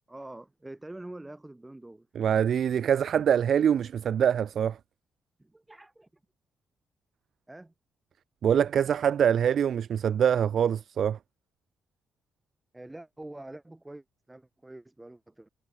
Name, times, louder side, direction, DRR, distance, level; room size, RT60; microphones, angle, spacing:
voice 1, 0.1-2.1 5.4-6.1 7.5-7.7 12.7-15.5, right 1 dB, 10° right, 4.3 m, -45 dB
voice 2, 2.2-4.8 8.4-11.2, right 8 dB, 60° right, 0.5 m, -24 dB
cardioid pair, 90°, 0 cm